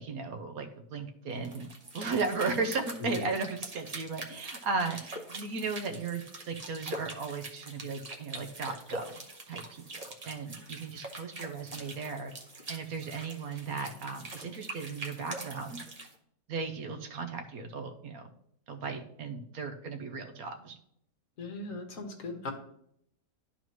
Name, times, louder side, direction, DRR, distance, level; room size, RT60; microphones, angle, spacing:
voice 1, 0.0-9.2 9.5-9.8 10.2-12.3 12.7-15.8 16.5-18.3 18.7-20.8, right 4 dB, 65° right, 6 dB, 1.1 m, -36 dB
sound 1, 1.3-16.1, right 2 dB, 30° right, 0.9 m, -44 dB
voice 2, 21.4-22.5, left 3 dB, 55° left, 5 dB, 1.3 m, -38 dB
12.0 x 4.1 x 3.1 m, 0.71 s
omnidirectional pair, 1.8 m